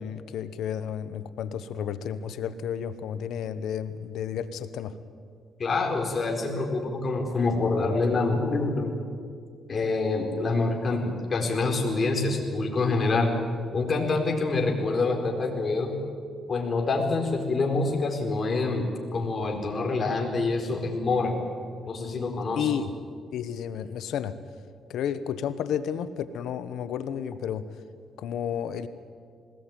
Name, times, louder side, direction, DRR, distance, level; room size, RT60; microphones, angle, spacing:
voice 1, 0.0-4.9 22.6-22.9 23.3-24.3 24.9-27.7 28.2-28.9, left 8 dB, 80° left, 12 dB, 1.2 m, -32 dB
voice 2, 5.6-8.9 9.7-13.3 13.7-16.0 16.5-21.3 21.8-22.7, left 3 dB, 35° left, 1 dB, 4.5 m, -26 dB
21.0 x 19.0 x 9.2 m, 2.1 s
cardioid pair, 95°, 0 cm